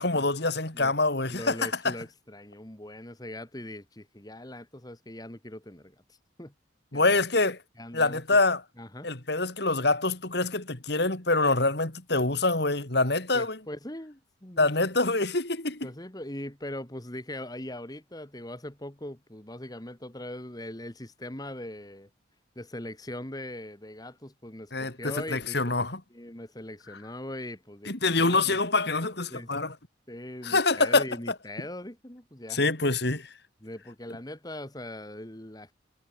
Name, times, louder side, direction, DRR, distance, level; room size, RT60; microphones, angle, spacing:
voice 1, 0.0-1.9 6.9-7.6 7.9-8.6 9.0-13.6 14.6-15.9 24.7-26.0 27.9-29.7 30.4-31.0 32.5-33.3, left 3 dB, 55° left, 2.6 m, -25 dB
voice 2, 1.3-6.5 6.9-7.2 7.8-8.2 8.8-9.1 13.3-14.7 15.8-22.1 22.6-25.6 26.1-28.6 29.3-29.5 30.1-32.6 33.6-35.7, left 1 dB, 20° left, 2.0 m, -41 dB
head